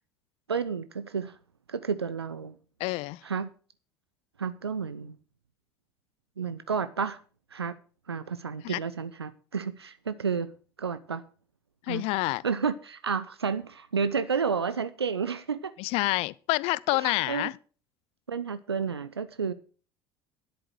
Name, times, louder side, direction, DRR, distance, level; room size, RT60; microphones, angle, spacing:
voice 1, 0.5-1.4 1.7-2.6 3.2-3.5 4.4-5.2 6.4-7.2 7.5-7.7 8.1-10.5 10.8-11.2 11.9-12.0 12.4-15.7 16.9-17.5 18.3-19.5, right 6 dB, 80° right, 0.5 m, -31 dB
voice 2, 2.8-3.2 8.6-8.8 11.9-12.4 15.8-17.5, left 21 dB, 50° left, 0.5 m, -28 dB
10.0 x 8.5 x 6.4 m
figure-of-eight pair, 65°, 13 cm